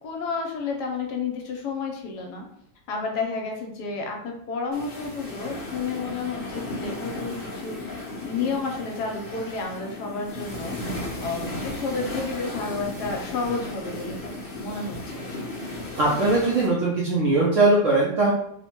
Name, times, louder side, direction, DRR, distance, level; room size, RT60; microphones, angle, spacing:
voice 1, 0.0-2.4 2.9-8.0 8.2-10.8 11.2-14.2 14.6-15.3, left 4 dB, 75° left, 1 dB, 1.1 m, -31 dB
sound 1, 4.7-16.7, left 2 dB, 55° left, 0.6 m, -35 dB
voice 2, 16.0-18.3, right 2 dB, 70° right, -5 dB, 0.7 m, -20 dB
3.0 x 2.1 x 2.9 m, 0.72 s
omnidirectional pair, 1.9 m